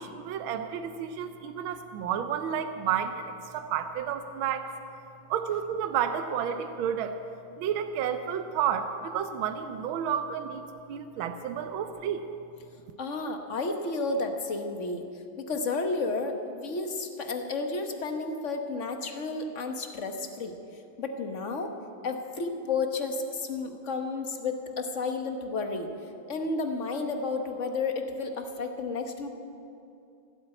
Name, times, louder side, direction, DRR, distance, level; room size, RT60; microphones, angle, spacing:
voice 1, 0.0-4.6 5.3-7.2 7.6-12.3, right 8 dB, 75° right, 8 dB, 1.5 m, -31 dB
voice 2, 13.0-15.0 15.4-20.6 21.0-21.7 22.0-25.9 26.3-29.3, left 3 dB, 45° left, 5 dB, 1.2 m, -32 dB
16.0 x 8.6 x 8.9 m, 2.7 s
omnidirectional pair, 2.3 m